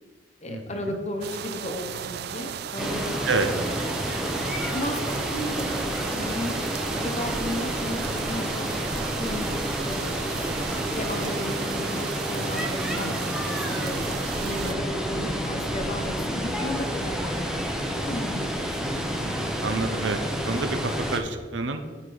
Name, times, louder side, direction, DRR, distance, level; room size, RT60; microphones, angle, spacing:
voice 1, 0.4-3.1 3.4-4.4 4.7-6.5 6.9-8.7 9.1-10.0 10.7-14.1 14.4-18.7, left 1 dB, 40° left, 4 dB, 1.0 m, -34 dB
sound 1, 1.2-14.7, right 9 dB, 60° right, 0.3 m, -35 dB
Water, 2.8-21.2, equal, 5° right, 0.7 m, -29 dB
voice 2, 19.2-20.2 20.4-21.8, right 3 dB, 80° right, 7 dB, 0.7 m, -28 dB
11.0 x 4.8 x 4.0 m, 1.4 s
head